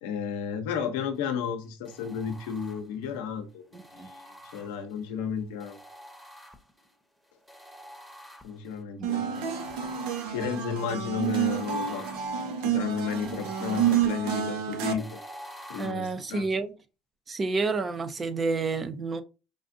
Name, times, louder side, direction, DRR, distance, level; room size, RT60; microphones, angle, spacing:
voice 1, 0.0-3.6 3.9-5.8 8.4-9.4 10.2-12.1 12.6-15.2 15.7-16.4, left 7 dB, 85° left, 0.7 m, -33 dB
sound 1, 1.9-3.1 3.7-5.1 5.6-6.9 7.5-8.8 9.3-15.9, equal, ahead, 0.9 m, -47 dB
voice 2, 3.7-4.1 9.0-9.1 15.8-16.7 17.3-19.2, right 4 dB, 30° right, 0.6 m, -29 dB
sound 2, 9.0-14.9, right 9 dB, 80° right, 0.7 m, -29 dB
5.1 x 2.5 x 2.6 m
supercardioid pair, 90°, 0 cm